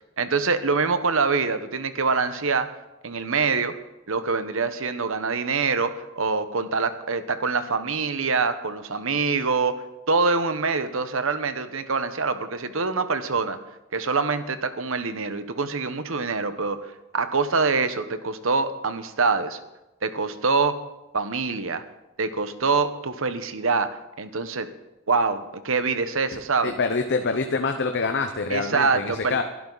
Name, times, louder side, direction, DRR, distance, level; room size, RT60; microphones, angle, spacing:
voice 1, 0.2-2.7 3.0-3.7 4.1-13.6 13.9-19.6 20.0-20.7 21.1-21.8 22.2-23.9 24.2-24.7 25.1-26.7 28.5-29.4, right 4 dB, 70° right, 10 dB, 1.1 m, -25 dB
voice 2, 26.6-29.4, left 4 dB, 55° left, 6 dB, 0.9 m, -25 dB
21.5 x 12.0 x 4.1 m, 0.99 s
head